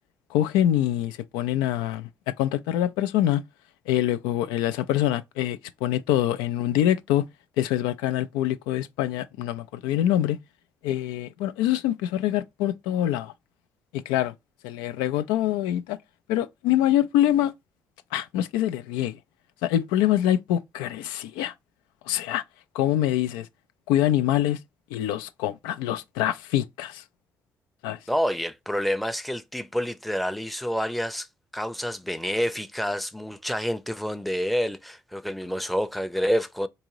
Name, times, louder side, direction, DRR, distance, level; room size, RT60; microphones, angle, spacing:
voice 1, 0.3-2.1 2.4-3.4 3.9-7.3 7.6-10.4 10.8-13.3 13.9-14.3 14.6-16.0 16.3-17.5 18.1-19.2 19.6-21.5 22.1-22.4 22.7-23.5 23.9-24.6 24.9-27.0 27.8-28.0, left 12 dB, 80° left, 0.4 m, -25 dB
voice 2, 28.1-31.3 31.5-36.7, equal, ahead, 0.6 m, -28 dB
3.7 x 2.6 x 3.0 m
hypercardioid pair, 45°, 8 cm